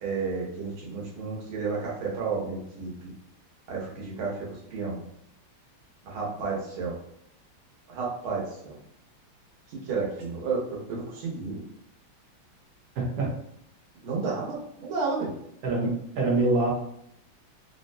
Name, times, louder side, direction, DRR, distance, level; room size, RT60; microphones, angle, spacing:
voice 1, 0.0-2.9 3.7-5.0 6.0-7.0 7.9-8.8 9.9-11.6 14.0-15.3, right 4 dB, 90° right, -4 dB, 1.8 m, -31 dB
voice 2, 12.9-13.3 15.6-16.7, right 2 dB, 60° right, -2 dB, 1.2 m, -25 dB
3.9 x 2.2 x 2.6 m, 0.73 s
omnidirectional pair, 2.2 m